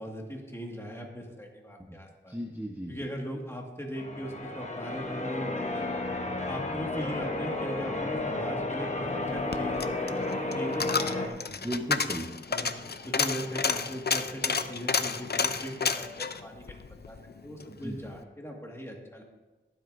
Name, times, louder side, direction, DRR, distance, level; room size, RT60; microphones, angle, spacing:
voice 1, 0.0-2.4 2.9-5.9 6.5-11.6 12.5-12.7 13.0-16.7 17.0-17.2 17.4-19.2, equal, 10° left, 0 dB, 1.9 m, -39 dB
voice 2, 2.3-3.1 11.5-12.3 17.7-18.0, equal, 10° right, 0 dB, 1.0 m, -36 dB
Church bell, 4.0-11.3, left 2 dB, 35° left, 1.1 m, -32 dB
Coin (dropping), 9.3-17.7 18.1-18.2, left 5 dB, 50° left, 0.5 m, -31 dB
21.5 x 8.1 x 2.6 m, 1.2 s
wide cardioid pair, 80°, 21 cm